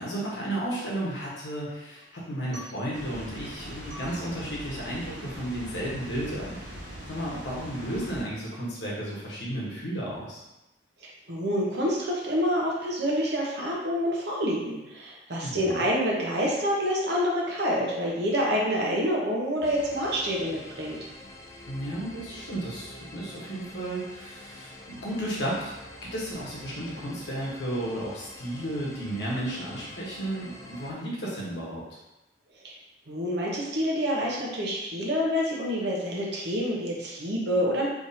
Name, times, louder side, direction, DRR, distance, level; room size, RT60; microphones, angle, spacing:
voice 1, 0.0-6.8 7.1-10.4 15.4-15.9 21.7-31.8, right 1 dB, 70° left, -5 dB, 1.1 m, -33 dB
Water, 2.9-8.2, equal, 90° right, 1.3 m, -41 dB
voice 2, 11.3-21.0 32.6-32.7 33.1-37.9, equal, 65° right, -3 dB, 0.9 m, -27 dB
sound 1, 19.6-30.9, left 1 dB, 15° left, 0.3 m, -46 dB
3.5 x 3.1 x 2.7 m, 0.97 s
head